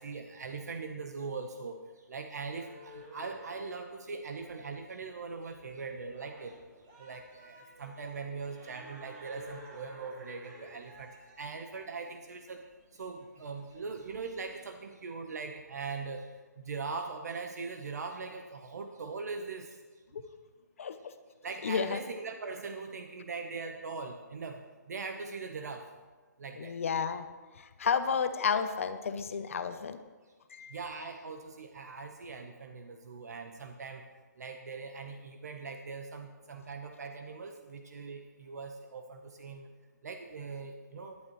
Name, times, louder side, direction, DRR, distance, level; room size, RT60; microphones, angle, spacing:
voice 1, 0.0-6.6 7.0-12.6 12.9-16.3 16.6-19.8 21.4-24.6 24.9-25.9 26.4-26.8 30.7-34.0 34.4-39.7 40.0-41.2, right 4 dB, 60° right, 5 dB, 1.0 m, -41 dB
Cattle-song-southsudan, 2.4-14.5, right 1 dB, 25° right, 2.3 m, -53 dB
voice 2, 20.8-21.1 21.6-22.0 26.6-27.3 27.5-30.0 30.5-30.8, left 6 dB, 45° left, 10 dB, 0.8 m, -32 dB
16.0 x 11.5 x 3.2 m, 1.3 s
hypercardioid pair, 165°, 10 cm